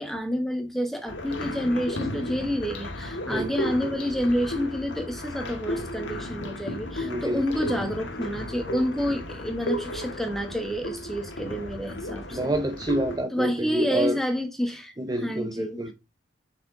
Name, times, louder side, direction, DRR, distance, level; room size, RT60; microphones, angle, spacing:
voice 1, 0.0-12.5 13.3-15.8, equal, ahead, 1.2 m, -29 dB
sound 1, 1.1-13.2, left 1 dB, 70° left, 1.6 m, -34 dB
voice 2, 7.0-7.4 12.3-14.2 15.0-15.9, right 1 dB, 20° right, 0.6 m, -27 dB
6.1 x 4.9 x 3.8 m
head